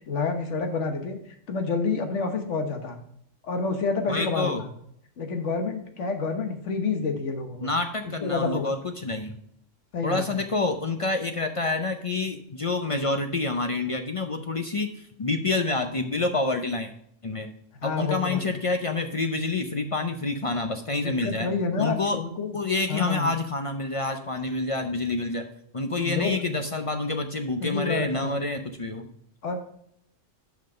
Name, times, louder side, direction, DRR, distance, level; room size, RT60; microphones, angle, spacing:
voice 1, 0.1-3.0 3.4-4.7 5.2-7.7 8.2-8.7 9.9-10.4 17.8-18.6 21.0-22.6 22.9-23.3 26.0-26.4 27.6-28.4 29.4-29.6, left 4 dB, 70° left, 5 dB, 1.4 m, -28 dB
voice 2, 4.1-4.6 7.6-9.4 10.0-16.9 17.2-17.5 17.8-21.5 21.8-22.2 22.5-25.5 25.7-29.1, left 3 dB, 45° left, 6 dB, 0.4 m, -28 dB
5.7 x 5.3 x 6.5 m, 0.69 s
omnidirectional pair, 1.3 m